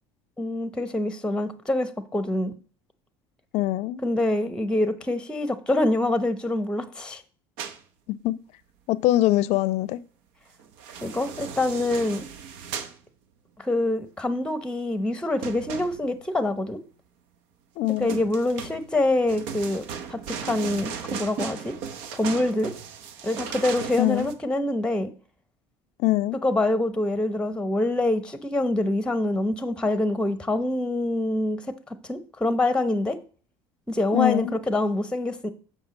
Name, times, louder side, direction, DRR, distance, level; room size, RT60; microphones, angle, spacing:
voice 1, 0.4-2.5 4.0-7.2 11.0-12.2 13.6-16.8 18.0-21.7 22.1-22.7 23.2-25.1 26.4-31.6 31.9-33.2 33.9-35.5, left 1 dB, 5° left, 0.8 m, -25 dB
voice 2, 3.5-4.0 8.1-8.4 8.9-10.0 17.8-18.2 24.0-24.3 26.0-26.4 34.1-34.5, left 16 dB, 60° left, 0.5 m, -23 dB
sound 1, 7.6-7.8 10.6-13.0 15.4-16.3 17.9-24.3, right 7 dB, 75° right, 0.9 m, -36 dB
7.2 x 5.7 x 4.1 m
hypercardioid pair, 75°, 13 cm